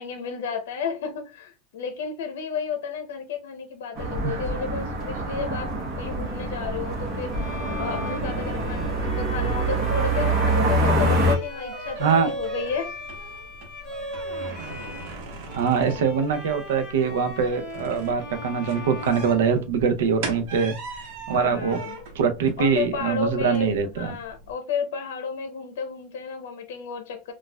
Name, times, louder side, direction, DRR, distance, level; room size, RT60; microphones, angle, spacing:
voice 1, 0.0-12.9 21.3-21.9 22.6-27.3, left 6 dB, 80° left, 0.6 m, -32 dB
sound 1, 4.0-11.3, right 2 dB, 30° right, 0.9 m, -25 dB
Bowed string instrument, 7.3-15.2 15.4-20.2, left 2 dB, 30° left, 1.5 m, -38 dB
sound 2, 10.7-24.5, right 3 dB, 55° right, 1.0 m, -40 dB
voice 2, 12.0-12.3 15.5-21.8 22.2-24.1, right 6 dB, 90° right, 0.6 m, -23 dB
4.1 x 2.3 x 2.2 m
supercardioid pair, 165°, 0 cm